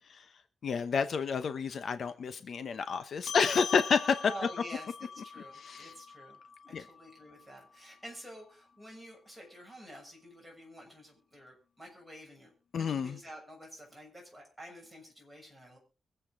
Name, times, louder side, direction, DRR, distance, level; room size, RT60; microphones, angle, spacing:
voice 1, 0.6-4.2 5.7-5.9 6.7-6.8 12.7-13.1, left 6 dB, 55° left, 10 dB, 0.9 m, -29 dB
sound 1, 3.3-8.1, left 7 dB, 85° left, 0.9 m, -43 dB
voice 2, 4.3-6.4 6.7-15.8, right 1 dB, ahead, -1 dB, 7.0 m, -49 dB
23.5 x 8.2 x 3.8 m, 0.32 s
wide cardioid pair, 175°, 0 cm